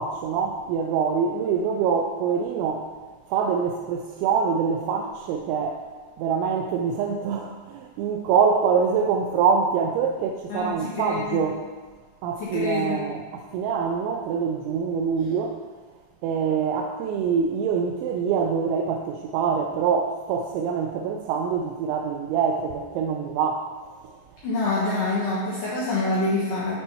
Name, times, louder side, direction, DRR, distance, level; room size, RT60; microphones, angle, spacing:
voice 1, 0.0-2.9 3.3-5.9 6.2-11.7 12.2-15.6 16.2-23.7 24.0-24.1, right 6 dB, 90° right, 2 dB, 2.9 m, -25 dB
voice 2, 10.5-11.4 12.4-13.0 24.4-26.8, left 2 dB, 65° left, -9 dB, 2.4 m, -26 dB
7.9 x 4.4 x 5.6 m, 1.4 s
omnidirectional pair, 5.1 m